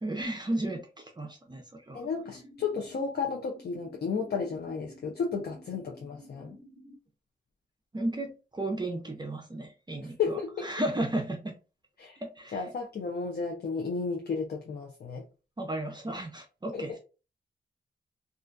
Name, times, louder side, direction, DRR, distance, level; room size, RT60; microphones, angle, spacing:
voice 1, 0.0-2.1 7.9-11.6 12.2-12.6 15.6-17.0, right 1 dB, 25° right, 0.5 m, -34 dB
voice 2, 1.9-6.6 10.2-10.7 12.0-12.2 12.5-15.2 16.7-16.8, left 5 dB, 65° left, 0.5 m, -33 dB
sound 1, 1.9-7.0, equal, 20° left, 1.1 m, -53 dB
2.4 x 2.1 x 2.5 m
cardioid pair, 70°, 18 cm